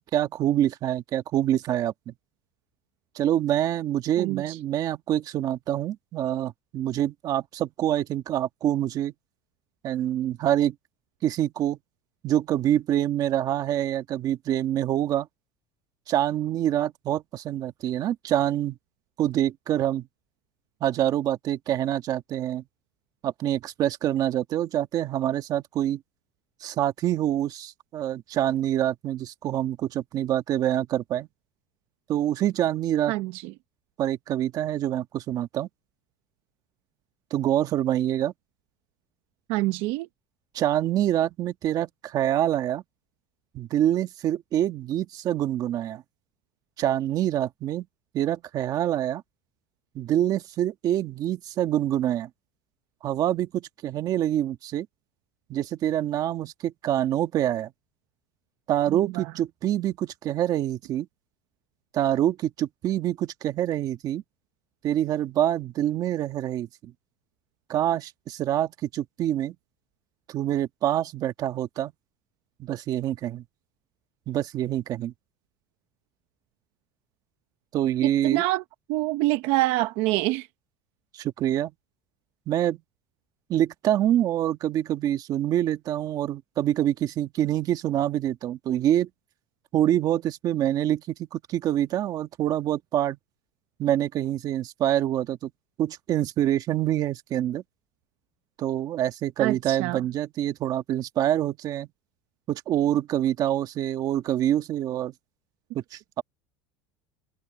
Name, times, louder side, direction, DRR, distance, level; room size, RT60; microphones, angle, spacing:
voice 1, 0.1-2.1 3.1-9.1 9.8-10.7 11.2-11.8 12.2-15.3 16.1-18.8 19.2-20.1 20.8-22.6 23.2-26.0 26.6-31.3 32.1-33.2 34.0-35.7 37.3-38.3 40.5-42.8 43.5-46.0 46.8-47.9 48.1-49.2 49.9-52.3 53.0-54.9 55.5-57.7 58.7-61.1 61.9-64.2 64.8-66.9 67.7-69.5 70.3-71.9 72.6-73.4 74.3-75.1 77.7-78.4 81.1-81.7 82.5-82.8 83.5-89.1 89.7-93.2 93.8-95.5 95.8-97.6 98.6-101.9 102.5-105.1 105.7-106.2, right 11 dB, 35° right, 1.6 m, -26 dB
voice 2, 33.1-33.4 39.5-40.1 78.2-78.6 78.9-80.5 99.4-100.0, right 19 dB, 60° right, 1.0 m, -25 dB
cardioid pair, 155°, 10 cm